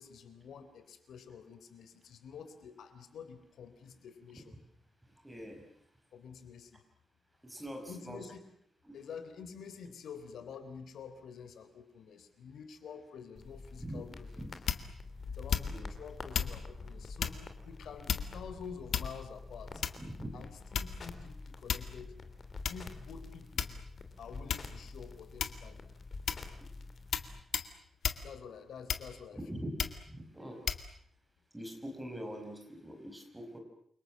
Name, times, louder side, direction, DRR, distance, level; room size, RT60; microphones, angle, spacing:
voice 1, 0.0-4.6 6.1-6.8 7.9-8.4 8.9-14.4 15.3-19.8 20.3-22.2 22.7-23.7 24.2-25.9 28.2-29.4, left 6 dB, 80° left, 9 dB, 3.6 m, -48 dB
voice 2, 5.2-5.6 7.4-8.2 8.8-9.0 13.8-14.0 14.4-14.5 15.7-15.9 20.0-20.4 29.3-29.7 30.1-30.6 31.5-33.6, equal, 5° right, 3 dB, 5.5 m, -43 dB
sound 1, 13.4-27.4, left 3 dB, 35° left, 2.7 m, -47 dB
sound 2, 14.7-15.0 15.5-15.9 16.3-16.6 17.2-17.4 18.1-18.5 18.9-19.3 19.8-20.1 20.7-21.1 21.7-22.0 22.6-22.8 23.6-24.0 24.5-24.7 25.4-25.7 26.3-26.5 27.1-27.3 27.5-27.7 28.0-28.2 28.9-29.3 29.8-30.0 30.7-30.8, left 7 dB, 65° left, 2.0 m, -33 dB
29.0 x 24.5 x 7.6 m, 0.68 s
wide cardioid pair, 170°, 0 cm